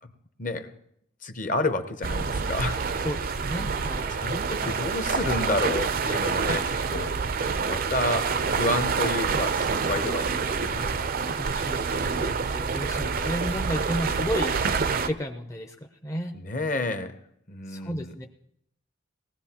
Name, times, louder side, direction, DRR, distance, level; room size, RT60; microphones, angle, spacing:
voice 1, 0.4-0.7 1.2-2.8 4.1-7.1 7.7-10.9 16.4-17.2 17.5-18.1, left 2 dB, 45° left, 9 dB, 0.9 m, -30 dB
sound 1, 2.0-15.1, right 5 dB, 50° right, 0.5 m, -27 dB
voice 2, 3.0-4.1 6.2-6.3 10.7-15.8 16.0-16.4 17.7-18.3, equal, 15° left, 3 dB, 0.6 m, -33 dB
19.0 x 15.5 x 2.9 m, 0.72 s
head